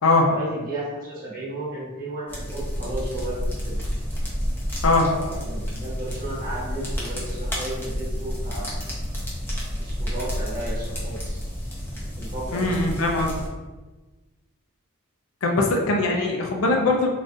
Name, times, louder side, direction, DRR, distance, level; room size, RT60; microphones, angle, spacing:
voice 1, 0.2-3.8 5.0-8.7 9.8-11.4 12.2-12.7, right 1 dB, 40° right, -7 dB, 1.3 m, -34 dB
sound 1, 2.3-13.5, equal, 10° left, 0.6 m, -30 dB
voice 2, 12.5-13.3 15.4-17.1, left 2 dB, 75° left, 1 dB, 0.5 m, -21 dB
3.8 x 2.5 x 2.6 m, 1.2 s
head